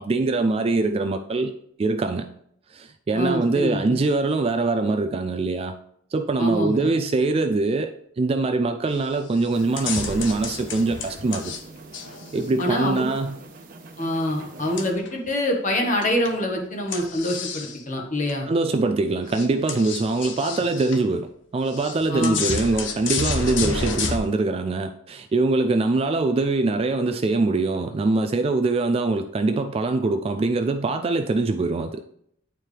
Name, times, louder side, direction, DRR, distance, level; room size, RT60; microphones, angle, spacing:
voice 1, 0.0-1.5 1.8-2.3 2.7-5.7 6.1-11.5 12.3-13.4 18.5-21.3 21.5-32.0, right 3 dB, 30° right, 0.3 m, -23 dB
voice 2, 3.1-4.0 6.4-6.9 12.6-13.0 14.0-18.5 22.1-22.4 23.6-23.7, left 1 dB, 45° left, 1.3 m, -25 dB
sound 1, 8.9-9.1 9.4-11.6 11.9-13.2 14.8-15.3 16.0-16.4 16.9-17.8 18.3-18.4 18.9-19.0 19.2-21.0 21.7-24.2, left 4 dB, 80° left, 0.8 m, -31 dB
sound 2, 9.5-14.9, right 3 dB, 50° right, 1.0 m, -44 dB
9.0 x 4.5 x 3.3 m
head